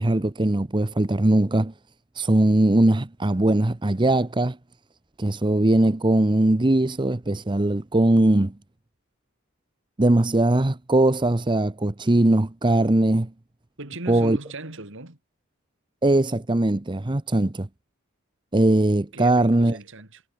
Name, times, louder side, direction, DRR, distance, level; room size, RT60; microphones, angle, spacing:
voice 1, 0.0-1.7 2.2-4.6 5.2-8.5 10.0-13.3 14.1-14.4 16.0-17.7 18.5-19.8, right 1 dB, 20° right, 0.7 m, -20 dB
voice 2, 13.8-15.2 19.1-20.2, right 2 dB, 60° right, 3.4 m, -37 dB
head